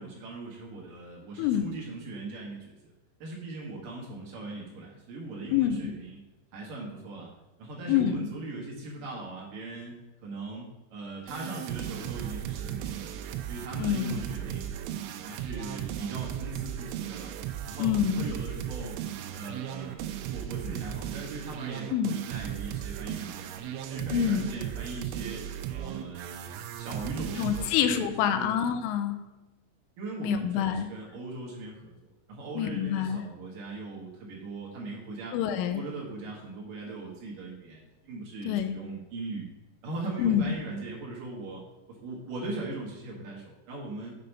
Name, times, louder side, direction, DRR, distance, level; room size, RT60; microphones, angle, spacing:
voice 1, 0.0-2.8 3.2-6.2 6.5-7.3 7.6-9.9 10.2-13.2 13.5-14.7 15.2-17.3 17.7-19.0 19.3-23.6 23.9-25.4 25.7-28.5 30.0-35.4 35.7-39.5 39.8-41.6 41.9-44.1, right 2 dB, 60° right, -3 dB, 2.4 m, -39 dB
voice 2, 5.5-5.9 7.9-8.3 13.8-14.2 17.8-18.3 21.9-22.2 24.1-24.5 27.4-29.2 30.2-30.9 32.6-33.2 35.3-35.8 38.5-38.8 40.2-40.6, left 9 dB, 85° left, 8 dB, 3.1 m, -27 dB
sound 1, 11.3-27.8, right 11 dB, 85° right, 3.1 m, -36 dB
8.0 x 5.4 x 5.4 m, 1.0 s
omnidirectional pair, 5.7 m